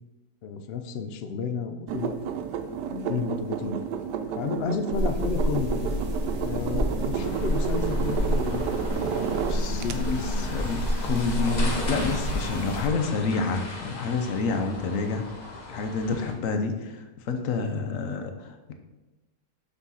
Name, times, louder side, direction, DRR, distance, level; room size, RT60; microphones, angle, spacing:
voice 1, 0.4-3.8 4.3-6.0 6.4-10.5 16.5-16.7 17.9-18.1, left 6 dB, 85° left, 7 dB, 0.5 m, -33 dB
sound 1, 1.9-9.9, right 8 dB, 90° right, 1.2 m, -31 dB
sound 2, 4.9-12.9, equal, 35° right, 0.6 m, -29 dB
sound 3, 7.1-16.3, left 2 dB, 30° left, 0.9 m, -38 dB
voice 2, 9.5-15.3 15.7-16.7 17.2-18.7, left 4 dB, 60° left, 6 dB, 1.0 m, -28 dB
6.0 x 4.0 x 5.6 m, 1.1 s
omnidirectional pair, 1.8 m